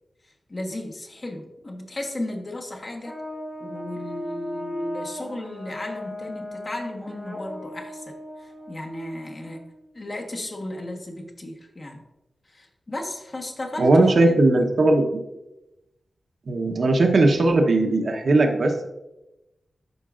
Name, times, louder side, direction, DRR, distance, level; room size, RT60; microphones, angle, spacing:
voice 1, 0.5-3.2 3.6-9.6 9.9-12.0 12.5-14.6, left 1 dB, 35° left, 1 dB, 1.2 m, -34 dB
Brass instrument, 3.0-9.8, equal, ahead, 1.1 m, -38 dB
voice 2, 13.8-15.2 16.5-18.9, right 2 dB, 60° right, 3 dB, 1.0 m, -18 dB
12.0 x 4.7 x 2.5 m, 0.96 s
wide cardioid pair, 110°, 0 cm